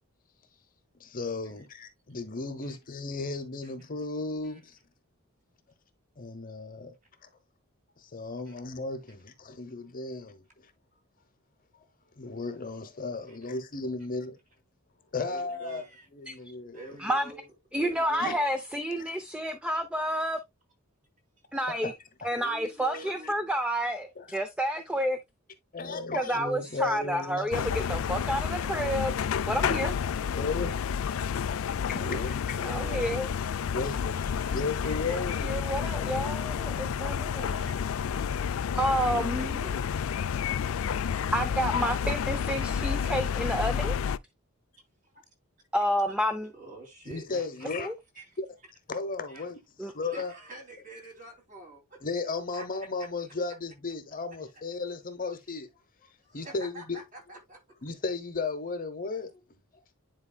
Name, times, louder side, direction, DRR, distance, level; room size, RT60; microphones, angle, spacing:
voice 1, 1.0-4.8 6.2-6.9 8.0-10.7 12.2-14.4 15.1-15.8 16.1-17.0 18.2-18.4 19.0-19.1 21.7-21.9 22.2-22.3 22.9-23.3 24.2-24.3 25.7-27.8 30.3-30.8 31.5-32.6 33.7-35.5 39.1-39.3 47.1-47.9 48.4-48.5 48.9-50.3 52.0-55.7 56.3-57.0 57.8-59.3 59.7-59.9, left 3 dB, 40° left, 0.9 m, -35 dB
voice 2, 15.2-16.1 16.7-18.4 22.3-23.4 26.7-26.8 27.7-27.8 31.3-31.4 31.7-33.2 34.3-34.5 34.8-35.4 37.5-37.8 38.1-38.6 39.0-39.9 46.4-47.8 48.2-48.4 49.3-49.4 50.0-52.0 52.5-52.7 56.3-57.6, right 2 dB, 35° right, 2.8 m, -47 dB
voice 3, 17.7-20.4 21.5-21.9 22.2-25.2 26.1-29.1 29.5-30.0 32.6-33.3 35.1-37.6 38.8-39.6 41.3-44.0 45.7-46.5 47.8-47.9 49.8-49.9, equal, 5° right, 0.5 m, -30 dB
sound 1, 27.5-44.2, left 7 dB, 65° left, 0.3 m, -30 dB
10.0 x 4.5 x 2.2 m
head